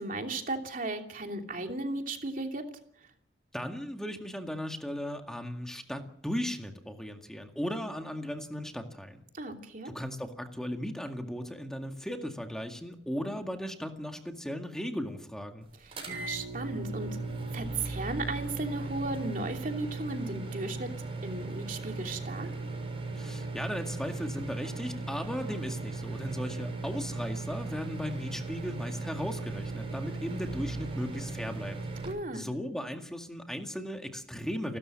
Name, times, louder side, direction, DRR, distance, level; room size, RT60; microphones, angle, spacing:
voice 1, 0.0-2.6 9.3-9.9 15.8-17.1 17.5-20.9 21.2-22.5 32.0-32.5, right 2 dB, 50° right, 4 dB, 2.9 m, -35 dB
voice 2, 3.5-9.2 9.8-15.7 23.2-31.8 32.3-34.8, equal, 5° left, 4 dB, 2.0 m, -36 dB
sound 1, 15.9-32.1, right 3 dB, 35° right, 6.6 m, -37 dB
29.5 x 13.0 x 7.6 m, 0.67 s
head